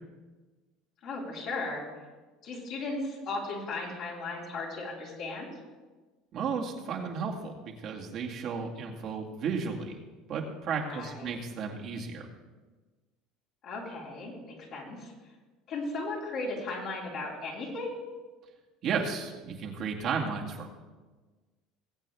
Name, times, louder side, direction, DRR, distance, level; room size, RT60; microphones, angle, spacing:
voice 1, 1.0-1.9 2.4-5.5 10.9-11.3 13.6-15.1 15.7-18.0, left 3 dB, 60° left, -3 dB, 3.7 m, -36 dB
voice 2, 6.3-10.0 10.3-12.2 18.8-20.8, right 5 dB, 55° right, -1 dB, 2.0 m, -33 dB
20.0 x 8.3 x 3.4 m, 1.3 s
supercardioid pair, 90°, 0 cm